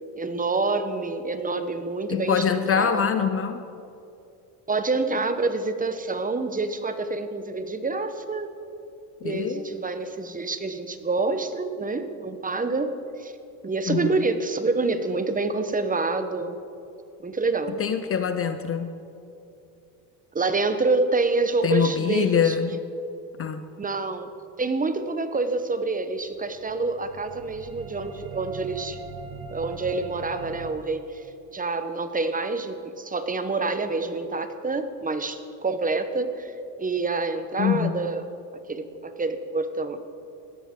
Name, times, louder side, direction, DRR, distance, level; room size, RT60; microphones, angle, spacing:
voice 1, 0.1-3.0 4.7-8.5 9.2-12.9 13.2-13.3 13.6-16.6 17.2-17.8 20.3-22.5 23.8-24.3 24.6-29.0 29.5-31.2 31.5-36.5 36.8-38.2 38.7-40.0, right 3 dB, 15° right, 10 dB, 0.8 m, -27 dB
voice 2, 2.1-3.6 9.2-9.7 13.9-14.2 17.8-18.9 21.6-22.8 23.4-23.6 37.6-38.0, left 7 dB, 30° left, 10 dB, 0.6 m, -24 dB
sound 1, 26.4-30.7, right 6 dB, 45° right, 1.5 m, -40 dB
16.0 x 13.0 x 3.7 m, 2.7 s
supercardioid pair, 90°, 47 cm